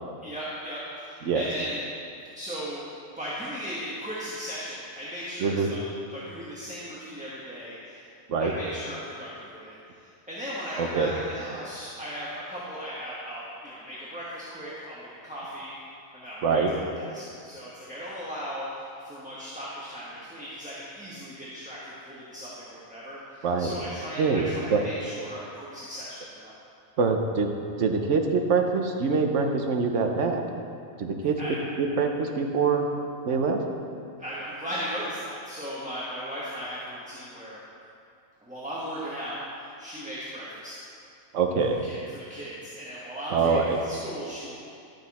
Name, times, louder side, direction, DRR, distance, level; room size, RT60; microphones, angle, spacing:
voice 1, 0.2-1.8 2.3-2.8 3.2-8.1 8.4-15.7 16.1-26.5 31.4-31.6 34.2-37.6 38.4-40.8 41.8-44.5, equal, 5° right, -8 dB, 1.1 m, -37 dB
voice 2, 10.8-11.1 16.4-16.7 23.4-23.7 24.2-24.5 24.7-24.8 27.0-27.5 27.8-30.5 31.0-31.4 31.8-32.8 33.3-33.6 41.3-41.8 43.3-43.8, right 5 dB, 65° right, 4 dB, 1.1 m, -24 dB
12.0 x 6.7 x 4.2 m, 2.5 s
omnidirectional pair, 1.4 m